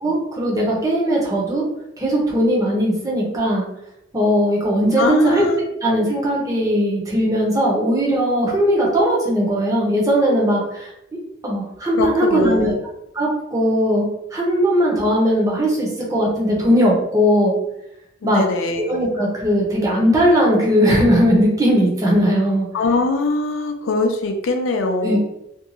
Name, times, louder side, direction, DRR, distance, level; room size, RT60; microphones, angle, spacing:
voice 1, 0.0-1.6 2.0-3.7 4.1-5.5 5.8-10.9 11.4-12.7 13.1-17.6 18.2-18.4 18.9-22.7 25.0-25.2, equal, 15° right, -4 dB, 0.7 m, -18 dB
voice 2, 5.0-5.7 11.9-12.8 18.2-18.9 22.7-25.2, left 3 dB, 80° left, 4 dB, 0.4 m, -21 dB
2.5 x 2.3 x 2.9 m, 0.82 s
head